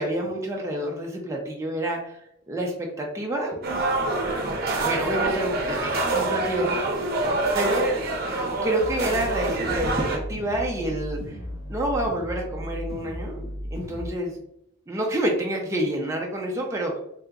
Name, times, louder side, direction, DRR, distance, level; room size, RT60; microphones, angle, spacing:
voice 1, 0.0-2.2 2.5-3.5 4.8-8.1 8.6-11.4 11.7-14.4 14.9-17.0, right 1 dB, 15° right, -1 dB, 0.4 m, -28 dB
sound 1, 3.6-10.2, right 2 dB, 50° right, 0.7 m, -26 dB
sound 2, 8.8-14.1, equal, 80° left, 0.6 m, -35 dB
3.3 x 2.8 x 2.4 m, 0.75 s
head